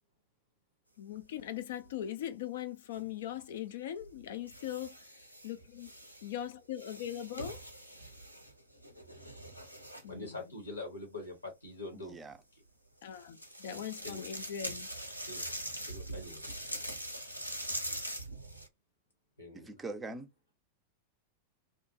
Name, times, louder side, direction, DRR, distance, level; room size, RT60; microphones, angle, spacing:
voice 1, 1.0-5.9 6.2-7.6 10.0-10.4 13.0-14.9, left 10 dB, 60° left, 0.4 m, -40 dB
sound 1, 1.1-1.9 2.9-3.1 4.0-6.4 6.8-10.1 13.0-18.7, right 1 dB, 90° right, 0.5 m, -43 dB
voice 2, 10.1-12.2 12.5-12.6 13.6-14.2 15.2-15.4 15.9-16.5 19.4-19.8, left 2 dB, 80° left, 0.9 m, -44 dB
voice 3, 11.9-12.3 19.5-20.3, right 2 dB, 15° right, 0.4 m, -42 dB
2.4 x 2.1 x 2.6 m
figure-of-eight pair, 90°, 0 cm